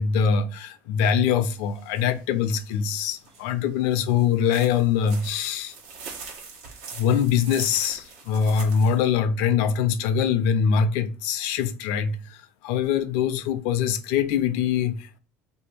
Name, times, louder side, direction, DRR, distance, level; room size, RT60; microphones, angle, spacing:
voice 1, 0.0-5.7 6.9-15.2, left 7 dB, 85° left, 0.5 m, -23 dB
sound 1, 1.3-9.0, right 5 dB, 80° right, 1.1 m, -43 dB
2.7 x 2.6 x 4.2 m
cardioid pair, 130°, 6 cm